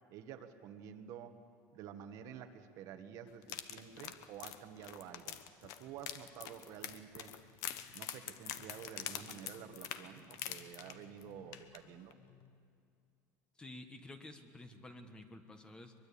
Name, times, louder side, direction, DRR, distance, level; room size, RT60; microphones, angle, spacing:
voice 1, 0.1-1.4 1.7-7.3 7.9-12.2, right 8 dB, 55° right, 7 dB, 1.5 m, -50 dB
sound 1, 3.4-11.2 11.5-11.8 12.1-12.2, left 11 dB, 55° left, 1.1 m, -45 dB
sound 2, 5.6-12.6, left 8 dB, 35° left, 1.4 m, -65 dB
voice 2, 13.5-15.9, left 2 dB, 10° left, 7 dB, 1.4 m, -51 dB
23.0 x 22.0 x 8.5 m, 2.3 s
cardioid pair, 145°, 7 cm